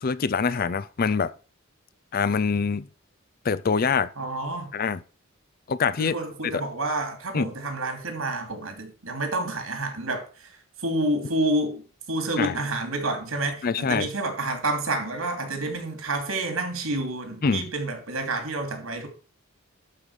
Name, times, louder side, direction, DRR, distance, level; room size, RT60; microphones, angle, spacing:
voice 1, 0.0-1.3 2.1-2.9 3.4-4.1 4.7-5.0 5.7-6.1 6.4-6.6 7.3-7.5 12.4-12.6 13.6-14.1 17.4-17.7, left 5 dB, 45° left, 0.5 m, -24 dB
voice 2, 4.2-4.7 6.0-19.1, right 2 dB, 80° right, 3.0 m, -29 dB
12.0 x 5.4 x 4.9 m
head